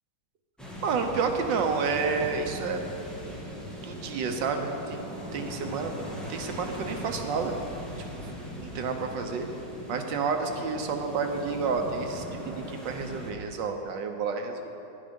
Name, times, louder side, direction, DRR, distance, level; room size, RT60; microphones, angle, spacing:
sound 1, 0.6-13.3, equal, ahead, 1.6 m, -39 dB
voice 1, 0.8-2.8 3.8-5.0 5.3-5.9 6.3-7.5 8.1-8.3 8.6-9.5 9.9-14.8, right 5 dB, 85° right, 4 dB, 1.6 m, -30 dB
10.5 x 8.9 x 5.3 m, 2.9 s
omnidirectional pair, 1.9 m